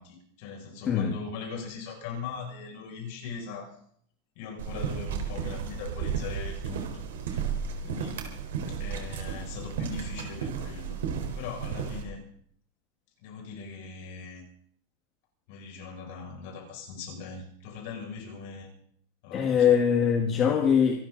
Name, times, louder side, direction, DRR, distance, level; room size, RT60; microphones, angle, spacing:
voice 1, 0.0-3.7 4.4-7.4 7.8-8.3 8.7-11.0 11.3-12.2 13.2-14.4 15.5-18.7 19.2-19.7, left 5 dB, 45° left, 1 dB, 6.1 m, -40 dB
voice 2, 0.8-1.2 19.3-21.1, left 7 dB, 20° left, 2 dB, 1.6 m, -23 dB
sound 1, 4.6-12.0, right 7 dB, 80° right, 4.1 m, -33 dB
26.5 x 13.0 x 3.9 m, 0.63 s
supercardioid pair, 180°, 0 cm